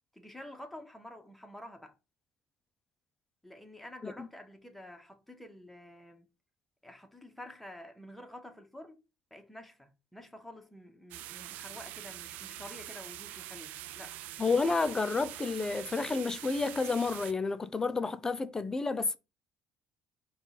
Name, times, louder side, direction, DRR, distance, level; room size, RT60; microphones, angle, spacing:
voice 1, 0.1-2.0 3.4-6.3 6.8-9.0 9.3-14.2, left 1 dB, 5° left, 0.9 m, -49 dB
sound 1, 11.1-17.3, right 14 dB, 75° right, 0.3 m, -44 dB
voice 2, 14.4-19.2, left 4 dB, 20° left, 0.4 m, -30 dB
4.4 x 2.4 x 4.2 m
supercardioid pair, 95°, 3 cm